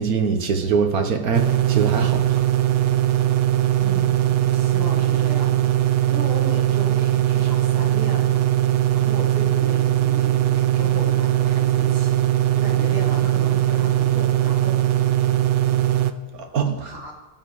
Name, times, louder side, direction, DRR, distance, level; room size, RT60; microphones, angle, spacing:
voice 1, 0.0-2.4 16.5-16.7, right 6 dB, 65° right, 5 dB, 1.7 m, -22 dB
sound 1, 1.3-16.1, right 12 dB, 80° right, 0.5 m, -20 dB
voice 2, 3.8-15.1 16.3-17.2, equal, 35° right, -2 dB, 2.7 m, -36 dB
16.5 x 7.5 x 4.9 m, 1.1 s
omnidirectional pair, 1.7 m